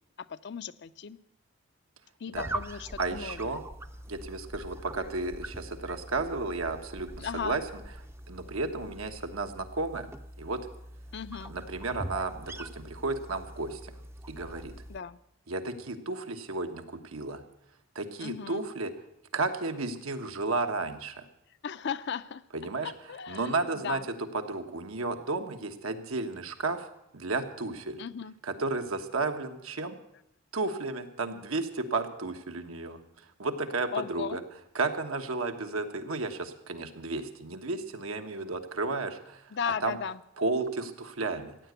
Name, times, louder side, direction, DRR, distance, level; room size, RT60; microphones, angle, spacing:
voice 1, 0.2-1.2 2.2-3.5 7.2-7.6 11.1-11.6 14.9-15.2 18.2-18.6 21.6-22.4 22.8-24.1 28.0-28.3 33.9-34.4 39.5-40.2, left 7 dB, 55° left, 15 dB, 0.5 m, -36 dB
sound 1, 2.3-15.0, right 1 dB, 10° right, 0.5 m, -43 dB
voice 2, 3.0-3.6 4.1-7.6 8.3-10.1 10.4-10.7 11.5-14.0 14.3-14.7 15.5-17.4 17.9-18.9 19.3-21.3 22.5-22.9 23.3-24.0 24.3-28.0 28.4-29.9 30.5-34.4 34.7-39.5 39.8-40.0 40.4-41.6, right 3 dB, 85° right, 6 dB, 1.3 m, -33 dB
15.0 x 9.4 x 8.1 m, 0.82 s
head